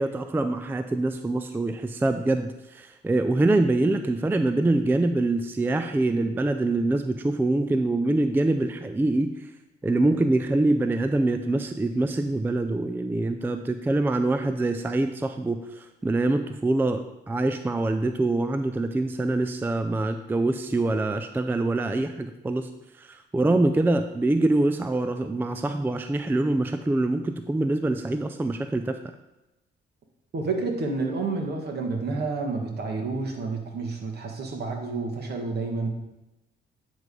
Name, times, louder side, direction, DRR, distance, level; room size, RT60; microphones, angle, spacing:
voice 1, 0.0-9.5 9.8-22.7 23.0-29.0, right 2 dB, 10° right, 8 dB, 0.4 m, -25 dB
voice 2, 30.3-35.9, right 3 dB, 55° right, 1 dB, 1.5 m, -29 dB
9.2 x 3.3 x 5.3 m, 0.96 s
cardioid pair, 90°, 20 cm